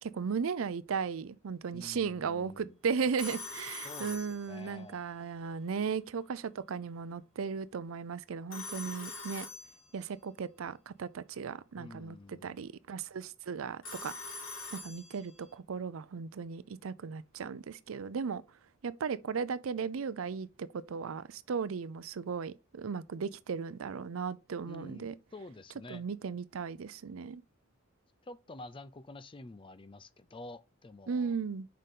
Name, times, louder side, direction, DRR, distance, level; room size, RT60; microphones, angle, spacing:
voice 1, 0.0-9.5 9.9-14.1 14.7-18.4 18.8-25.1 25.9-27.4 31.1-31.7, right 5 dB, 85° right, 0.5 m, -36 dB
voice 2, 1.7-2.8 3.8-5.0 11.8-12.6 24.7-26.0 28.2-31.4, left 2 dB, 25° left, 0.5 m, -49 dB
Telephone, 3.2-5.0 8.5-10.2 13.8-15.5, left 3 dB, 80° left, 2.5 m, -44 dB
6.6 x 5.2 x 3.8 m
head